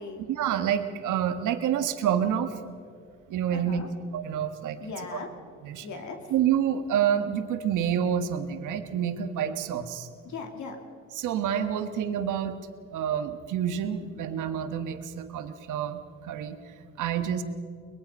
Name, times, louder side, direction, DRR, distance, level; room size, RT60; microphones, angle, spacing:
voice 1, 0.3-2.6 3.3-3.8 4.1-4.8 5.6-5.9 6.3-10.1 11.1-12.6 12.9-16.6 17.0-17.4, right 9 dB, 85° right, 8 dB, 1.5 m, -28 dB
voice 2, 3.5-3.9 4.8-5.3 5.8-6.2 10.2-10.8, left 4 dB, 70° left, 4 dB, 2.7 m, -38 dB
23.0 x 21.0 x 5.5 m, 2.3 s
cardioid pair, 90°, 30 cm